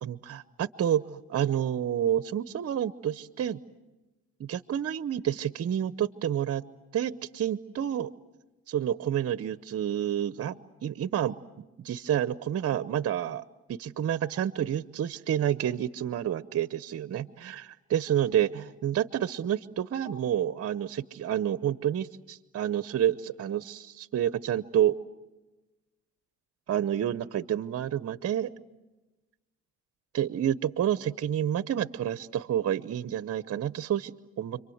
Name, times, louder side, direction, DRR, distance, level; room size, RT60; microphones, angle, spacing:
voice 1, 0.0-3.6 4.4-6.6 6.9-8.1 8.7-10.6 10.8-13.4 13.7-24.9 26.7-28.5 30.1-34.6, right 10 dB, 50° right, 15 dB, 0.8 m, -29 dB
30.0 x 24.0 x 7.9 m, 1.1 s
cardioid pair, 90°, 30 cm